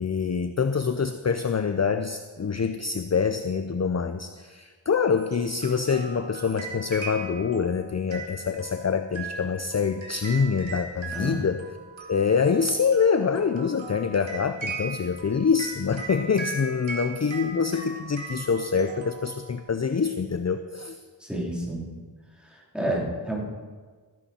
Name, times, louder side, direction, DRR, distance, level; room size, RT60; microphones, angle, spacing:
voice 1, 0.0-11.6 12.1-21.0, left 5 dB, 35° left, 9 dB, 0.6 m, -25 dB
sound 1, 5.0-19.7, right 4 dB, 80° right, 2.3 m, -39 dB
voice 2, 11.1-11.4 21.2-21.9 22.4-23.4, right 1 dB, ahead, -3 dB, 3.4 m, -30 dB
14.5 x 10.5 x 4.3 m, 1.5 s
wide cardioid pair, 40°, 46 cm